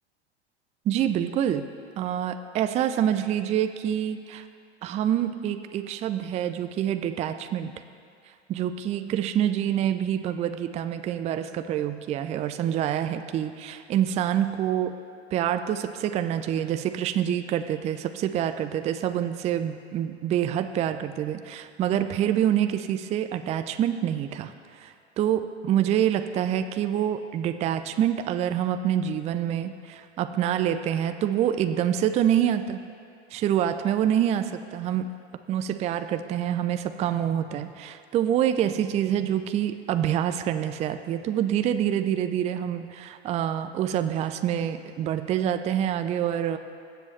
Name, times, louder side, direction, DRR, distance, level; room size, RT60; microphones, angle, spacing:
voice 1, 0.9-1.7 2.0-4.4 4.8-7.8 8.5-14.9 15.3-32.8 33.3-35.1 35.5-46.6, right 10 dB, 20° right, 9 dB, 0.4 m, -26 dB
20.5 x 7.8 x 3.1 m, 2.3 s
figure-of-eight pair, 90°, 34 cm